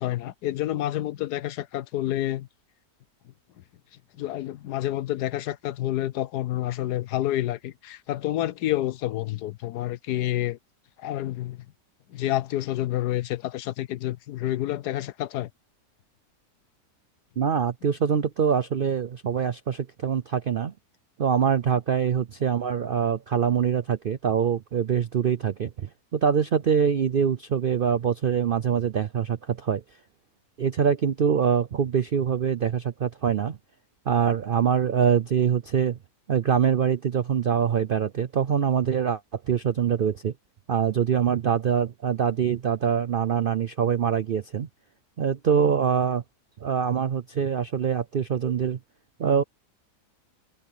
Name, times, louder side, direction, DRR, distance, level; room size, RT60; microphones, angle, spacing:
voice 1, 0.0-2.5 4.2-10.6 11.0-11.6 12.1-15.5, left 14 dB, 80° left, 1.3 m, -29 dB
voice 2, 17.4-20.7 21.2-29.8 30.6-33.6 34.1-36.0 36.3-39.2 39.5-40.3 40.7-44.7 45.2-46.2 46.6-48.8 49.2-49.4, right 7 dB, 65° right, 0.5 m, -24 dB
omnidirectional pair, 1.7 m